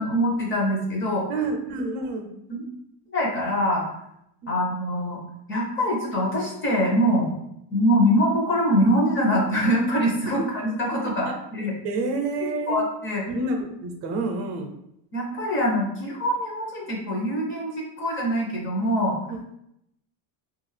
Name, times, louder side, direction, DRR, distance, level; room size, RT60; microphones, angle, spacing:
voice 1, 0.0-1.3 2.5-2.6 3.1-3.8 4.5-5.2 5.5-7.3 7.7-11.7 12.7-13.2 15.1-19.2, equal, 25° left, -3 dB, 0.6 m, -23 dB
voice 2, 1.3-2.3 4.4-4.6 10.2-10.4 11.3-11.4 11.8-12.8 13.3-14.7 19.2-19.4, right 3 dB, 60° right, 4 dB, 0.6 m, -28 dB
2.5 x 2.4 x 3.2 m, 0.78 s
cardioid pair, 140°, 50 cm